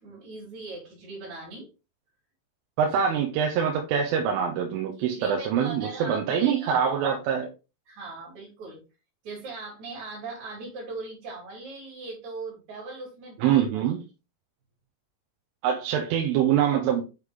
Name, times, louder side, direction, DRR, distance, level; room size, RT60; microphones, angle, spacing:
voice 1, 0.0-1.7 5.1-6.8 7.9-8.8 9.2-13.6, right 3 dB, 40° right, -6 dB, 3.9 m, -39 dB
voice 2, 2.8-7.5 13.4-14.0 15.6-17.0, right 8 dB, 80° right, 3 dB, 3.4 m, -24 dB
8.1 x 5.0 x 3.4 m, 0.29 s
omnidirectional pair, 5.7 m